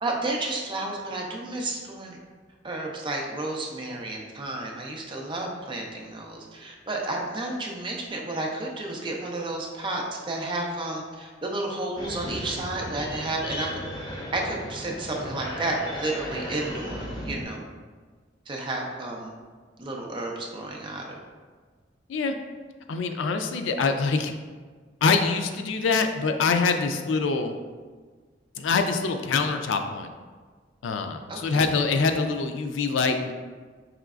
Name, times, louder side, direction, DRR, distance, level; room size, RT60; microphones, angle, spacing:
voice 1, 0.0-2.2 2.6-13.8 14.3-17.6 18.5-19.3 19.8-21.2 31.3-31.7, right 2 dB, 25° right, 0 dB, 0.5 m, -31 dB
sound 1, 12.0-17.4, equal, 25° left, 0.6 m, -36 dB
voice 2, 22.9-24.3 25.0-27.5 28.6-30.1 30.8-33.3, left 4 dB, 90° left, 7 dB, 0.4 m, -24 dB
4.8 x 3.1 x 2.4 m, 1.5 s
head